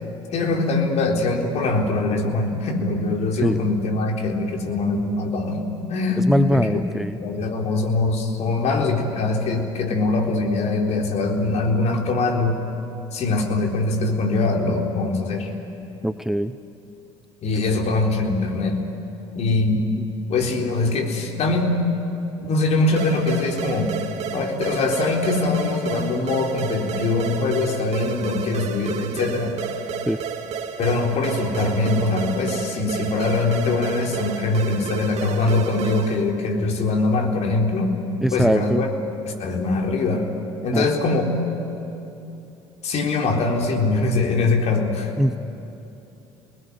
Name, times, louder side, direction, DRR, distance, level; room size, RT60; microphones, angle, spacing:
voice 1, 0.3-5.6 5.9-6.8 7.2-12.6 13.1-15.5 17.4-18.8 19.3-19.9 20.3-21.8 22.5-23.9 24.3-29.5 30.8-38.0 38.3-38.9 39.2-40.3 40.6-41.3 42.8-45.1, left 3 dB, 50° left, 1 dB, 3.9 m, -22 dB
voice 2, 6.3-7.2 16.0-16.5 30.1-30.2 38.2-38.8 40.7-40.9 45.2-45.4, equal, ahead, 12 dB, 0.7 m, -21 dB
sound 1, 23.0-36.3, right 7 dB, 50° right, 1.8 m, -31 dB
28.5 x 20.0 x 9.5 m, 2.9 s
hypercardioid pair, 60°, 15 cm